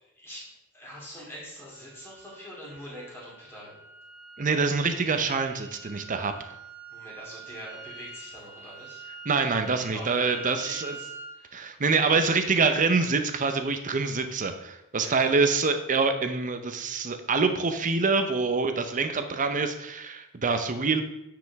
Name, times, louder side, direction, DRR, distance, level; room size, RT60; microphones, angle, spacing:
voice 1, 0.1-3.8 6.9-9.0 9.9-11.7 15.0-15.4, equal, 10° left, -6 dB, 2.7 m, -44 dB
sound 1, 1.7-11.4, right 4 dB, 10° right, 1.0 m, -45 dB
voice 2, 4.4-6.5 9.3-10.9 11.5-21.0, right 4 dB, 35° right, 8 dB, 0.7 m, -25 dB
9.4 x 5.0 x 3.5 m, 0.87 s
head